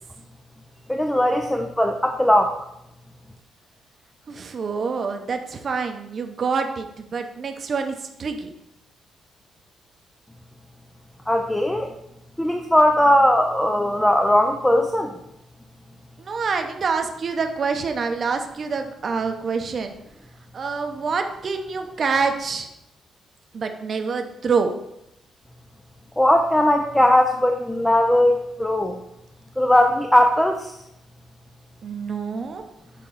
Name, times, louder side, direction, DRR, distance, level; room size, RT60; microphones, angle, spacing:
voice 1, 0.9-2.5 11.3-11.9 12.4-15.1 26.2-29.0 29.6-30.7, left 1 dB, 5° left, 4 dB, 0.4 m, -19 dB
voice 2, 4.3-8.5 16.2-19.9 20.5-22.7 23.5-24.7 31.8-32.6, right 5 dB, 40° right, 5 dB, 0.7 m, -26 dB
6.7 x 3.7 x 5.4 m, 0.82 s
cardioid pair, 150°, 0 cm